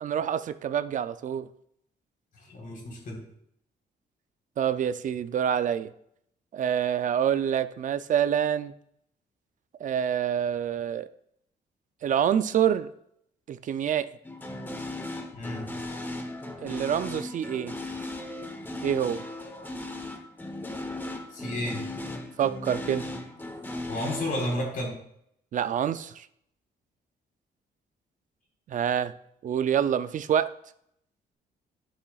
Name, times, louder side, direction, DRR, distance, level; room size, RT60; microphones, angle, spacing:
voice 1, 0.0-1.5 4.6-5.9 6.5-8.7 9.8-11.1 12.0-12.9 13.5-14.1 16.6-17.7 18.8-19.2 22.4-23.1 25.5-26.3 28.7-29.1 29.4-30.5, right 9 dB, 45° right, 13 dB, 0.4 m, -26 dB
voice 2, 2.4-3.2 15.3-15.7 21.3-21.8 23.9-25.0, left 1 dB, 50° left, -2 dB, 3.7 m, -32 dB
sound 1, 14.2-24.6, left 2 dB, 10° left, 0.9 m, -37 dB
11.5 x 7.2 x 2.4 m, 0.71 s
cardioid pair, 145°, 18 cm